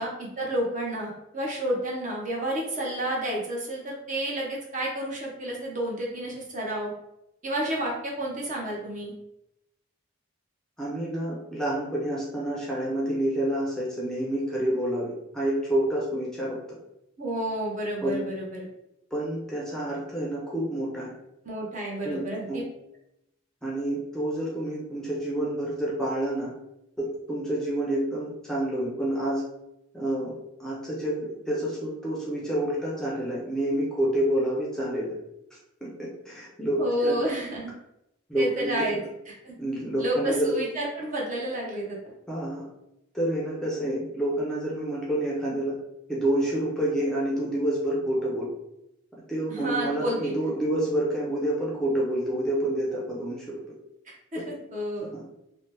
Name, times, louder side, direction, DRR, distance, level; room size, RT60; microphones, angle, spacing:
voice 1, 0.0-6.9 7.4-9.1 17.2-18.7 21.5-22.6 36.8-37.7 38.3-39.0 39.4-39.6 40.0-42.1 49.5-50.3 54.1-55.1, right 1 dB, 40° right, -3 dB, 0.7 m, -30 dB
voice 2, 10.8-16.6 18.0-18.2 19.1-21.1 22.0-22.2 22.5-22.6 23.6-26.5 27.0-29.4 29.9-30.3 30.6-35.1 35.8-37.2 38.3-39.0 39.6-40.6 42.3-42.6 43.1-45.7 46.1-48.5 49.3-53.6 54.3-54.6 55.1-55.2, right 1 dB, 5° left, -5 dB, 0.5 m, -28 dB
2.8 x 2.0 x 3.3 m, 0.85 s
head